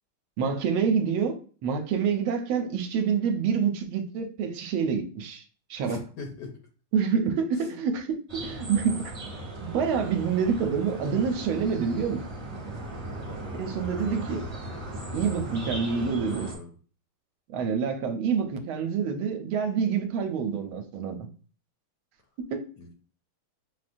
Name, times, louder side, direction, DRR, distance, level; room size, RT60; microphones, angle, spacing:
voice 1, 0.4-5.4 5.7-6.0 6.9-9.1 9.6-12.2 13.5-14.4 15.1-16.5 17.5-21.2 22.4-22.7, right 6 dB, 80° right, 6 dB, 1.3 m, -27 dB
voice 2, 5.8-6.6 7.5-7.8 13.3-13.8 14.1-14.5 15.9-16.8 22.8-22.9, left 3 dB, 70° left, 2 dB, 1.0 m, -42 dB
sound 1, 8.3-16.5, right 1 dB, 35° right, 1.2 m, -37 dB
6.1 x 2.2 x 2.5 m, 0.40 s
omnidirectional pair, 2.4 m